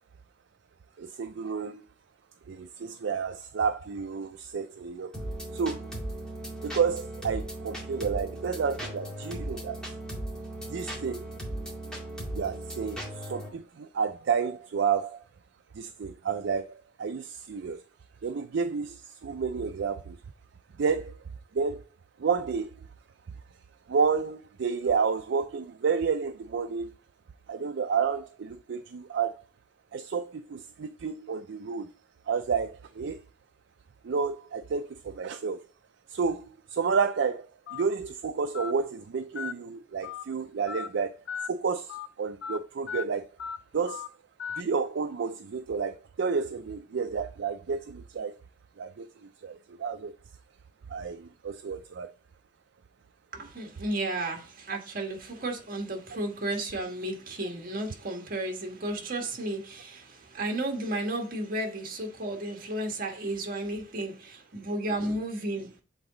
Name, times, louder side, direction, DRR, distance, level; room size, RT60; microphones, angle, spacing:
voice 1, 1.0-1.8 2.5-5.1 5.5-5.9 6.6-9.8 10.7-11.3 12.3-15.2 15.8-17.8 18.2-20.2 20.8-21.1 21.5-21.8 22.2-22.7 23.9-26.9 27.5-29.4 29.9-31.9 32.3-33.2 34.0-35.6 36.1-36.4 36.7-37.5 37.7-41.1 41.5-43.3 43.7-44.0 44.6-48.3 48.8-49.1 49.4-50.1 50.9-52.1 65.0-65.1, right 5 dB, 65° right, 0.4 m, -30 dB
sound 1, 5.1-13.5, right 1 dB, 5° left, 2.1 m, -37 dB
Telephone, 37.7-37.8 38.5-38.7 39.4-39.5 40.0-40.2 40.7-40.9 41.3-41.5 41.9-42.1 42.4-42.6 42.9-43.0 43.4-43.6 43.9-44.1 44.4-44.6, left 7 dB, 80° left, 0.3 m, -36 dB
voice 2, 53.3-65.8, right 1 dB, 50° right, 1.4 m, -33 dB
7.9 x 4.0 x 3.8 m
head